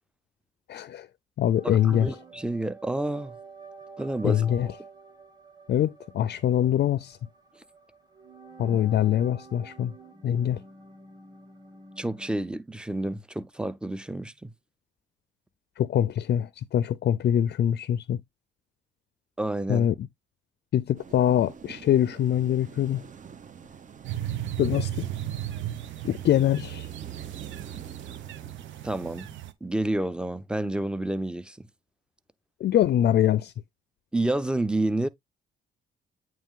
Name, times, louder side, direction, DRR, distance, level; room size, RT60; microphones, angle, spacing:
voice 1, 0.7-1.1 1.4-2.1 4.2-4.7 5.7-7.2 8.6-9.9 10.2-10.6 15.8-18.2 19.7-20.1 20.7-23.0 24.6-25.1 26.0-26.9 32.6-33.5, left 10 dB, 55° left, 0.5 m, -24 dB
sound 1, 1.5-12.4, right 3 dB, 20° right, 2.3 m, -49 dB
voice 2, 1.6-3.4 4.0-4.4 8.6-8.8 12.0-14.5 19.4-19.9 28.8-29.3 29.6-31.7 34.1-35.1, right 1 dB, 5° right, 0.6 m, -29 dB
sound 2, 21.0-29.1, right 7 dB, 40° right, 0.8 m, -47 dB
sound 3, 24.0-29.5, right 12 dB, 75° right, 0.8 m, -35 dB
8.6 x 3.1 x 3.6 m
cardioid pair, 90°, 20 cm